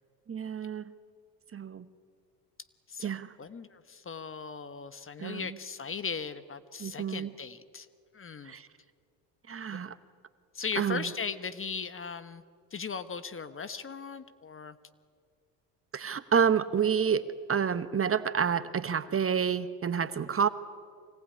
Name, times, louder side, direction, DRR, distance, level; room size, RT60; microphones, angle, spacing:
voice 1, 0.3-0.8 1.5-1.9 3.0-3.3 5.2-5.4 6.8-7.3 8.5-8.7 9.5-9.9 10.8-11.0 15.9-17.2 17.5-20.5, right 7 dB, 25° right, 13 dB, 1.1 m, -28 dB
voice 2, 3.4-7.9 8.1-8.5 9.7-9.8 10.5-12.4 12.7-14.8, left 5 dB, 25° left, 14 dB, 1.2 m, -38 dB
25.0 x 18.5 x 9.8 m, 2.2 s
hypercardioid pair, 75°, 49 cm